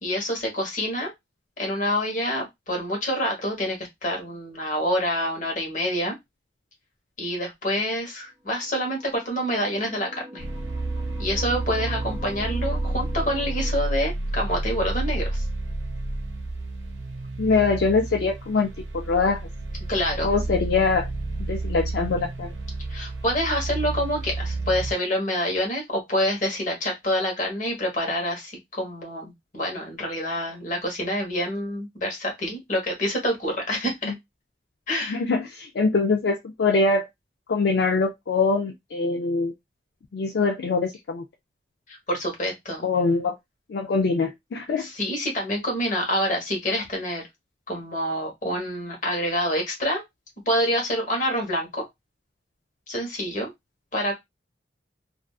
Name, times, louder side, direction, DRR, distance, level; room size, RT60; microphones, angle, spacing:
voice 1, 0.0-1.1 1.6-6.1 7.2-10.4 11.2-15.4 19.9-20.3 22.9-34.1 34.9-35.2 41.9-42.8 44.8-47.3 47.7-50.0 50.5-51.8 52.9-53.5 53.9-54.1, equal, 45° left, 1.1 m, -27 dB
sound 1, 8.4-13.7, equal, 30° right, 0.6 m, -42 dB
sound 2, 10.4-24.9, right 2 dB, 85° right, 0.6 m, -30 dB
voice 2, 17.4-19.5 20.2-21.1 21.5-22.5 34.0-34.1 35.1-37.1 37.5-39.5 40.1-41.2 42.8-43.3 43.7-44.9, left 4 dB, 65° left, 0.4 m, -23 dB
2.5 x 2.4 x 2.3 m
head